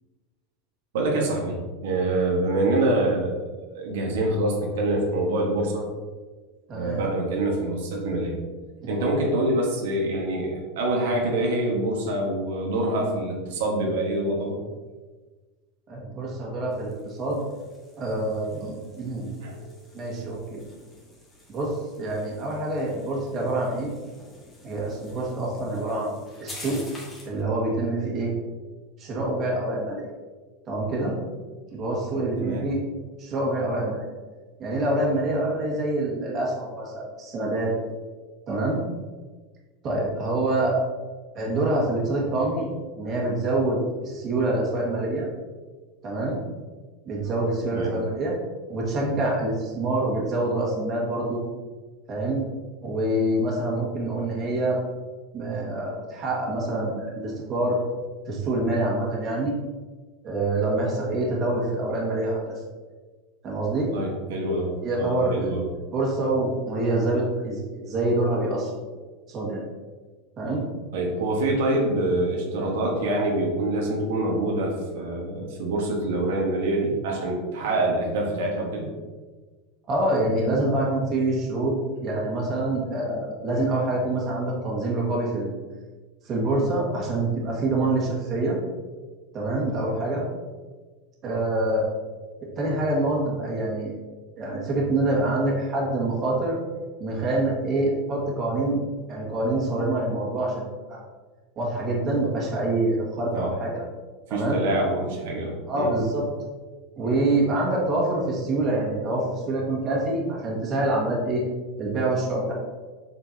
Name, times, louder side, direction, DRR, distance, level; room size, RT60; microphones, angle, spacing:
voice 1, 0.9-3.4 3.7-5.9 6.7-8.4 8.9-14.6 18.6-18.7 19.3-20.4 32.4-32.7 47.7-47.9 63.9-65.7 70.9-78.9 103.3-103.5 104.3-105.9, right 1 dB, 80° right, -1 dB, 1.4 m, -26 dB
voice 2, 6.7-7.1 8.8-9.0 15.9-17.4 18.0-19.3 19.9-20.7 21.5-23.9 24.6-26.2 26.4-26.8 27.3-28.3 29.0-30.1 30.7-31.1 31.7-32.8 33.2-34.1 34.6-37.7 38.5-38.8 39.8-40.8 41.4-42.7 43.0-45.3 46.0-46.4 47.1-48.3 48.7-51.4 52.1-52.4 52.8-54.8 55.3-57.8 58.3-59.5 60.2-62.6 63.4-63.9 64.8-65.5 65.9-68.7 69.3-69.6 70.4-70.6 79.9-85.5 86.3-88.6 89.3-90.2 91.2-91.9 92.6-93.9 94.4-96.6 97.0-98.8 99.1-101.0 101.6-103.9 104.3-104.6 105.7-106.2 107.0-111.4 111.8-112.5, right 2 dB, 35° right, -3 dB, 1.7 m, -26 dB
sound 1, 16.7-27.4, left 2 dB, 15° left, 1.6 m, -48 dB
7.5 x 4.4 x 2.8 m, 1.3 s
supercardioid pair, 140°, 0 cm